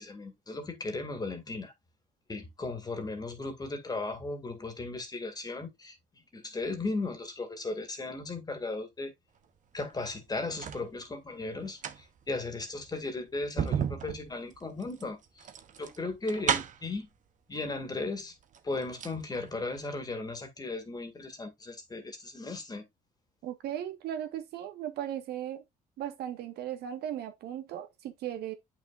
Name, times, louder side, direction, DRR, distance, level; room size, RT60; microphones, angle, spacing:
voice 1, 0.0-1.7 2.3-6.0 6.3-9.1 9.7-15.2 15.8-17.1 17.5-18.3 18.6-22.8, left 3 dB, 25° left, 2.2 m, -36 dB
sound 1, 9.9-10.9 11.6-17.0 17.9-18.0 18.4-19.2 19.5-19.6, right 8 dB, 50° right, 1.1 m, -34 dB
voice 2, 23.4-25.6 26.0-28.5, right 11 dB, 75° right, 1.7 m, -37 dB
8.8 x 5.9 x 2.6 m
cardioid pair, 110°, 17 cm